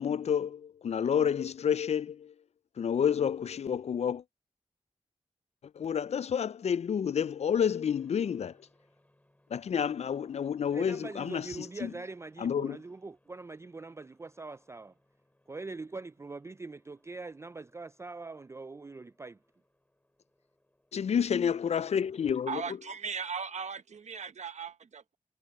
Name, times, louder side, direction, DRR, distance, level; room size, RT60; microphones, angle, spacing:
voice 1, 0.0-2.3 2.8-4.2 5.8-8.5 9.5-11.5 11.8-11.9 12.4-12.8 20.9-22.6, left 8 dB, 65° left, 0.4 m, -29 dB
sound 1, 7.8-21.9, left 1 dB, 10° left, 6.9 m, -70 dB
voice 2, 10.7-15.0 15.5-19.4, right 3 dB, 25° right, 0.3 m, -43 dB
voice 3, 22.5-25.2, right 6 dB, 75° right, 1.0 m, -38 dB
cardioid pair, 70°, 12 cm